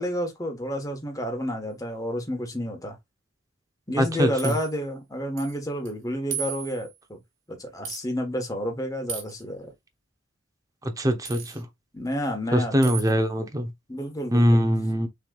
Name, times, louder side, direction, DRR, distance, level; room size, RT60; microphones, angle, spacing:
voice 1, 0.0-3.0 3.9-7.2 7.5-9.7 11.9-12.9 13.9-14.6, equal, 20° left, 1.3 m, -30 dB
voice 2, 4.0-4.5 11.0-11.7 12.5-13.7 14.3-15.1, equal, 20° right, 0.8 m, -22 dB
sound 1, 4.0-4.8 5.4-5.6 5.8-5.9 6.3-7.0 7.8-8.0 9.1-9.4 11.2-11.6 12.8-13.1, right 7 dB, 75° right, 1.8 m, -35 dB
6.4 x 3.3 x 2.4 m
head